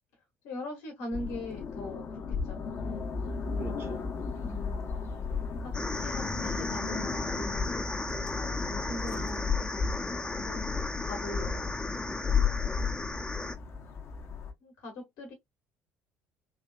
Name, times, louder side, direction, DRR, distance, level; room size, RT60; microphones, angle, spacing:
voice 1, 0.4-2.6 4.4-4.9 5.6-7.8 8.3-11.8 14.6-15.3, left 1 dB, 65° left, 1.6 m, -42 dB
sound 1, 1.1-14.5, left 5 dB, 45° left, 0.9 m, -34 dB
voice 2, 3.6-4.6 12.9-13.3, right 5 dB, 40° right, 0.9 m, -50 dB
sound 2, 5.7-13.5, left 2 dB, 15° left, 0.6 m, -35 dB
3.6 x 3.1 x 2.3 m
figure-of-eight pair, 55°, 6 cm